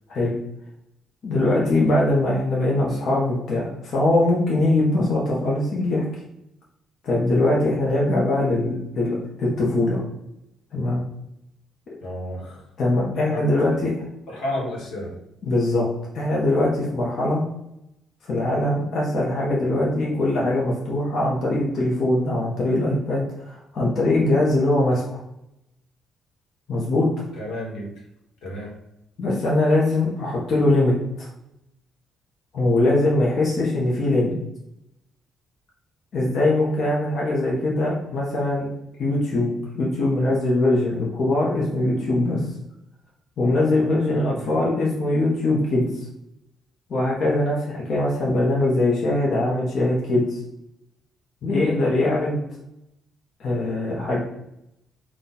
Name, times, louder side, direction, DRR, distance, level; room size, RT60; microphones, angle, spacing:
voice 1, 1.2-6.0 7.0-10.0 10.7-11.0 12.8-14.1 15.4-15.9 16.1-17.4 18.3-25.2 26.7-27.1 29.2-31.3 32.5-34.3 36.1-38.7 39.0-42.4 43.4-45.9 46.9-50.4 51.4-52.4 53.4-54.2, left 2 dB, 60° left, -4 dB, 0.9 m, -22 dB
voice 2, 12.0-12.6 13.3-13.4 14.3-15.1 27.4-27.9 28.4-28.7 44.1-44.5, left 1 dB, 85° left, -2 dB, 1.2 m, -31 dB
3.9 x 2.3 x 3.9 m, 0.85 s
supercardioid pair, 75°, 0 cm